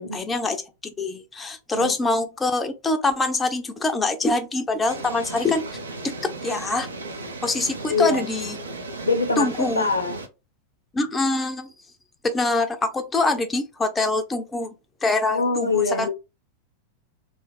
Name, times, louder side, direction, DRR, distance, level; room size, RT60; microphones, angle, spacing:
voice 1, 0.0-5.6 6.0-6.9 7.4-8.6 9.4-9.9 10.9-11.7 12.2-14.7 15.0-16.1, left 2 dB, 15° left, 0.4 m, -24 dB
voice 2, 1.7-2.2 7.9-8.2 9.0-10.2 15.3-16.1, left 4 dB, 80° left, 0.6 m, -24 dB
sound 1, 4.8-10.3, right 2 dB, 75° right, 0.5 m, -36 dB
2.5 x 2.3 x 3.3 m
figure-of-eight pair, 90°, 0 cm